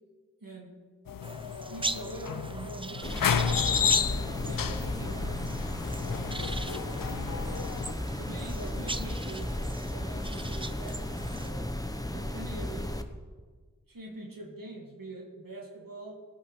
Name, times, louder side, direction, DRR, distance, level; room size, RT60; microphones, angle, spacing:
voice 1, 0.4-0.8 1.7-4.1 4.4-5.4 6.7-6.9 8.1-9.6 9.9-11.8 12.1-13.0 13.9-16.2, right 1 dB, 80° right, -1 dB, 2.0 m, -44 dB
sound 1, 1.1-7.9, left 7 dB, 80° left, 0.5 m, -31 dB
sound 2, 1.2-11.5, right 2 dB, 15° right, 0.5 m, -40 dB
sound 3, 3.0-13.0, left 1 dB, 10° left, 1.0 m, -35 dB
18.0 x 11.5 x 3.3 m, 1.5 s
wide cardioid pair, 45°, 33 cm